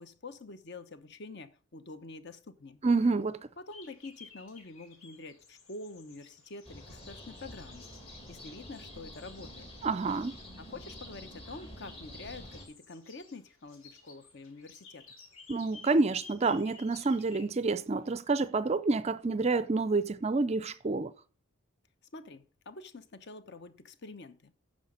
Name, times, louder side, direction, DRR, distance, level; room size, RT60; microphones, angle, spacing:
voice 1, 0.0-2.8 3.6-9.7 10.6-15.0 22.1-24.5, left 3 dB, 50° left, 0.8 m, -47 dB
voice 2, 2.8-3.5 9.8-10.4 15.5-21.1, right 3 dB, 30° right, 0.4 m, -28 dB
sound 1, 3.7-18.4, left 4 dB, 65° left, 2.5 m, -56 dB
sound 2, 6.6-12.7, left 1 dB, 25° left, 2.1 m, -48 dB
9.9 x 6.3 x 5.0 m
head